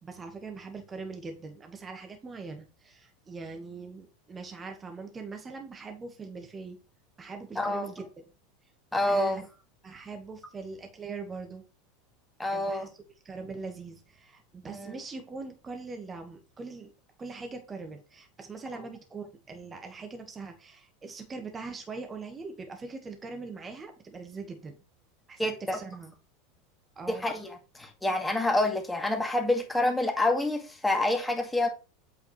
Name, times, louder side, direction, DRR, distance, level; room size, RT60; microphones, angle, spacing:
voice 1, 0.0-6.8 7.2-8.3 8.6-8.7 9.1-9.4 9.8-11.6 12.5-12.9 13.2-16.9 17.2-24.8 25.3-26.1 26.9-27.3, right 4 dB, 25° right, 1.4 m, -41 dB
voice 2, 7.6-7.9 8.9-9.4 12.4-12.9 14.7-14.9 25.4-25.8 27.2-27.5 27.8-31.7, left 2 dB, 5° left, 1.9 m, -27 dB
8.2 x 5.0 x 3.2 m
hypercardioid pair, 90°, 0 cm